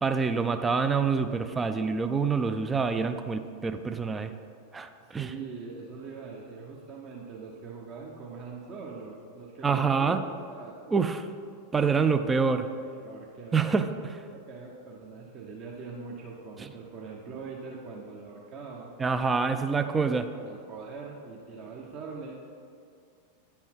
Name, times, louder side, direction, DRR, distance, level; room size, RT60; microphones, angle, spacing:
voice 1, 0.0-4.3 4.7-5.3 9.6-10.2 10.9-11.2 11.7-12.7 13.5-14.2 19.0-20.3, right 5 dB, 15° right, 9 dB, 0.5 m, -26 dB
voice 2, 5.0-11.0 12.8-13.7 14.3-18.9 20.0-22.4, right 4 dB, 35° right, -2 dB, 1.0 m, -43 dB
9.7 x 5.4 x 4.6 m, 2.3 s
figure-of-eight pair, 90°, 0 cm